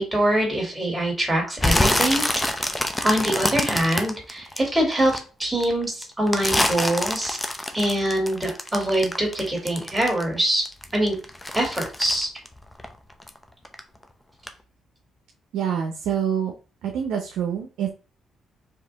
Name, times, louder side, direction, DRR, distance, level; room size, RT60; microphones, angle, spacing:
voice 1, 0.0-2.2 3.0-7.4 7.7-10.7 10.9-11.2 11.5-12.3, right 1 dB, 15° right, 0 dB, 2.5 m, -24 dB
sound 1, 1.6-5.2 5.6-10.4 10.7-13.4 13.7-14.0 14.5-14.6, left 1 dB, 10° left, 0.7 m, -25 dB
voice 2, 15.5-16.5 16.8-17.9, right 8 dB, 85° right, 3 dB, 0.7 m, -26 dB
4.7 x 2.9 x 3.4 m, 0.34 s
cardioid pair, 90°, 0 cm